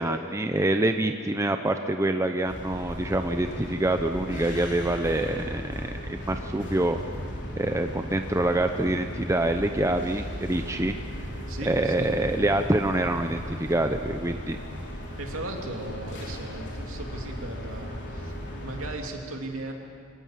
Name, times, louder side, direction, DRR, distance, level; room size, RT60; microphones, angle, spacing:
voice 1, 0.0-7.0 7.6-11.0 11.7-14.6, right 1 dB, 15° right, 6 dB, 0.7 m, -26 dB
sound 1, 2.5-18.9, equal, 55° left, 3.5 m, -36 dB
voice 2, 11.5-12.1 15.2-18.4 18.6-19.7, right 2 dB, 65° right, 1 dB, 2.9 m, -37 dB
24.0 x 18.0 x 7.4 m, 2.3 s
head